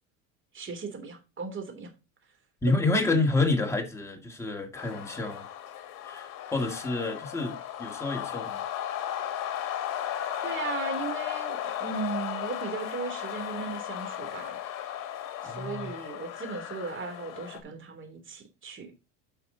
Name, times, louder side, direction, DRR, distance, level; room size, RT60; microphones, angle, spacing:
voice 1, 0.5-1.9 10.4-14.6 15.4-18.9, right 4 dB, 30° right, 3.3 m, -37 dB
voice 2, 2.6-5.4 6.0-8.6 15.4-15.9, left 2 dB, 5° left, 2.4 m, -28 dB
sound 1, 4.8-17.6, left 11 dB, 55° left, 2.3 m, -35 dB
9.7 x 5.9 x 4.0 m
supercardioid pair, 120°, 39 cm